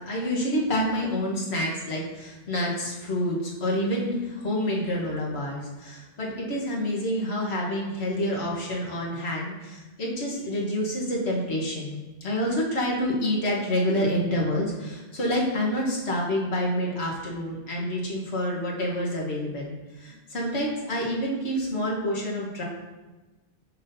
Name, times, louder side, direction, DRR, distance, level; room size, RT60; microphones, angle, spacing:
voice 1, 0.0-22.6, equal, 65° left, -3 dB, 1.5 m, -28 dB
6.1 x 5.9 x 2.6 m, 1.2 s
omnidirectional pair, 1.2 m